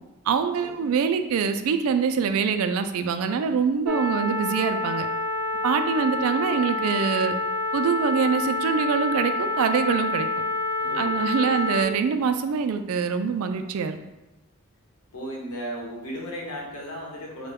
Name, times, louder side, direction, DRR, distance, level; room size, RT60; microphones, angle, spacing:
voice 1, 0.3-5.1 5.6-7.3 7.7-10.3 11.0-14.0, right 6 dB, 75° right, 9 dB, 0.3 m, -24 dB
sound 1, 3.9-11.8, left 2 dB, 5° right, 0.5 m, -27 dB
voice 2, 10.8-11.8 15.1-17.5, equal, 90° left, -2 dB, 0.9 m, -36 dB
3.8 x 2.2 x 3.4 m, 1.0 s
head